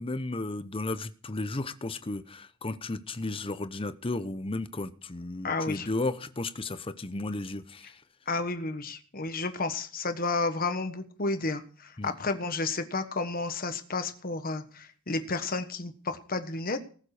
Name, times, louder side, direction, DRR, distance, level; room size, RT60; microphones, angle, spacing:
voice 1, 0.0-8.0 12.0-12.1, left 2 dB, 25° left, 13 dB, 0.8 m, -34 dB
voice 2, 5.4-5.9 8.3-16.8, left 3 dB, 45° left, 9 dB, 1.3 m, -31 dB
19.0 x 7.4 x 4.9 m, 0.42 s
head